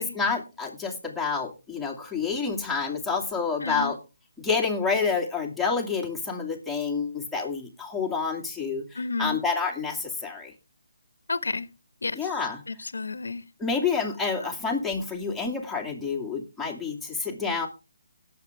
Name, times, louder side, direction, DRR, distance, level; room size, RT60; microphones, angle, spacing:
voice 1, 0.0-4.0 4.4-10.5 12.1-12.6 13.6-17.7, left 5 dB, 5° left, 2.2 m, -28 dB
voice 2, 3.6-3.9 8.9-9.4 11.3-11.7 12.0-12.3 12.7-13.4, left 3 dB, 90° left, 1.2 m, -31 dB
19.0 x 7.8 x 3.5 m
hypercardioid pair, 165°, 0 cm